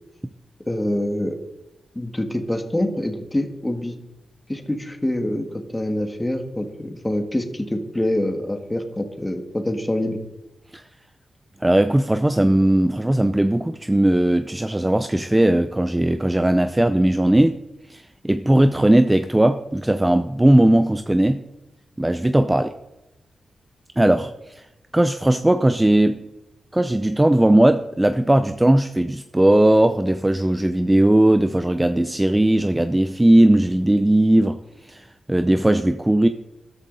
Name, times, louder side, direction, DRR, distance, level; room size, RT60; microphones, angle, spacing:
voice 1, 0.7-1.4 1.9-3.9 4.5-10.2, left 1 dB, 10° left, 6 dB, 1.7 m, -25 dB
voice 2, 11.6-17.6 17.9-21.4 22.0-22.7 24.0-24.6 24.9-26.2 26.7-34.6 34.8-36.3, right 1 dB, 10° right, 10 dB, 0.5 m, -18 dB
13.5 x 12.5 x 4.0 m, 0.93 s
wide cardioid pair, 120°, 0 cm